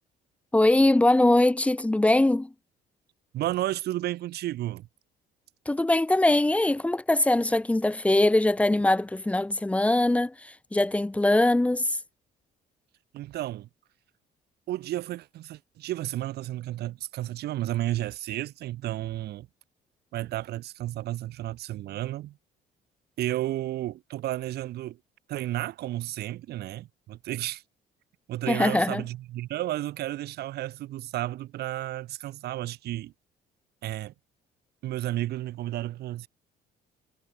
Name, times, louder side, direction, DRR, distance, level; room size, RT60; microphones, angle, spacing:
voice 1, 0.5-2.5 5.7-12.0 28.5-29.0, left 1 dB, 10° left, 0.7 m, -22 dB
voice 2, 3.3-4.9 13.1-13.7 14.7-19.5 20.1-22.4 23.2-25.0 25.3-27.6 28.3-33.1 33.8-34.1 34.8-36.3, right 14 dB, 70° right, 3.9 m, -32 dB
cardioid pair, 110°, 17 cm